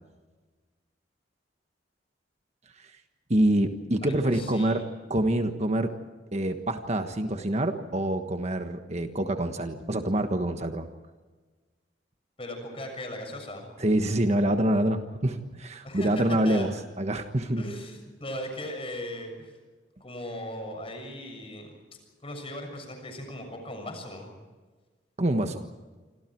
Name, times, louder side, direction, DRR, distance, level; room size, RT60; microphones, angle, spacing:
voice 1, 3.3-4.8 5.1-5.9 6.3-10.9 13.8-17.6 25.2-25.7, right 1 dB, 40° right, 7 dB, 1.4 m, -26 dB
voice 2, 4.0-4.9 12.4-13.8 15.8-16.1 16.4-16.7 17.6-19.5 20.0-21.7 22.2-24.3, left 1 dB, 30° left, 5 dB, 6.7 m, -38 dB
28.0 x 26.0 x 4.6 m, 1.3 s
head